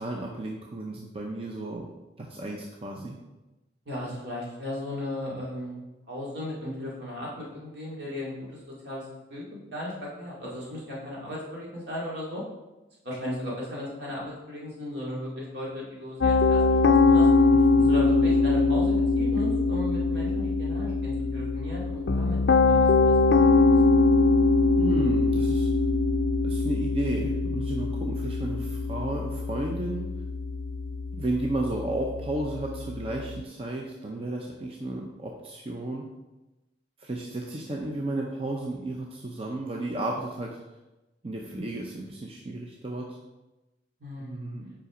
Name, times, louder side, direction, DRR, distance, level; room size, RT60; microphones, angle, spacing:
voice 1, 0.0-1.9 2.2-3.2 17.8-17.9 24.8-25.7 26.4-30.1 31.1-36.0 37.0-40.6 41.2-43.2 44.2-44.7, right 2 dB, 30° right, 0 dB, 0.6 m, -33 dB
voice 2, 3.9-5.8 6.1-9.4 9.7-12.4 13.0-17.3 17.9-23.6 23.9-24.1 44.0-44.5, left 1 dB, 65° right, -5 dB, 2.4 m, -36 dB
Piano, 16.2-33.3, left 3 dB, 65° left, 0.3 m, -23 dB
5.5 x 5.1 x 4.9 m, 1.0 s
head